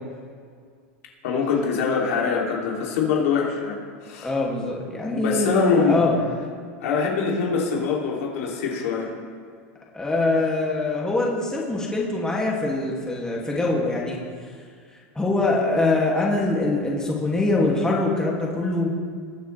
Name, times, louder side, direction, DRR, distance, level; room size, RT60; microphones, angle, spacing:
voice 1, 1.2-4.3 5.1-6.0 6.8-9.1, left 5 dB, 80° left, -2 dB, 2.8 m, -24 dB
voice 2, 4.2-6.2 9.9-14.2 15.2-18.9, left 2 dB, 10° left, -3 dB, 2.3 m, -23 dB
21.5 x 8.2 x 3.3 m, 2.1 s
supercardioid pair, 125°, 7 cm